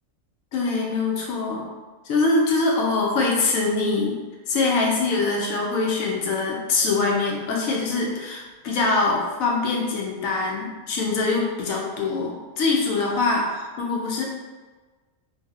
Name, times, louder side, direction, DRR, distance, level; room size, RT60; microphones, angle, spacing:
voice 1, 0.5-1.6 2.1-4.2 4.5-14.2, left 3 dB, 75° left, -1 dB, 1.0 m, -23 dB
3.2 x 2.1 x 3.5 m, 1.3 s
omnidirectional pair, 1.5 m